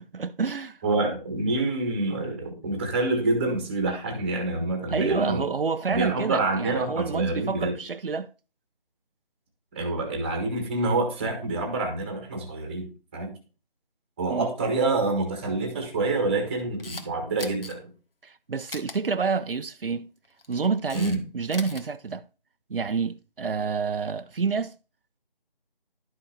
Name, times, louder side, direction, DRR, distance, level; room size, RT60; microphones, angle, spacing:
voice 1, 0.1-0.8 4.9-8.3 14.3-14.5 18.2-20.1 20.5-22.2 22.7-24.7, right 5 dB, 70° right, 0.7 m, -28 dB
voice 2, 0.8-5.4 5.9-7.7 9.7-12.9 13.1-13.3 14.2-17.9 20.9-21.2, right 2 dB, 10° right, 1.4 m, -27 dB
Camera, 16.6-17.1 17.4-17.7 18.7-19.0 20.2-21.2 21.4-21.8, left 3 dB, 75° left, 1.8 m, -39 dB
11.5 x 5.8 x 4.3 m
figure-of-eight pair, 170°, 29 cm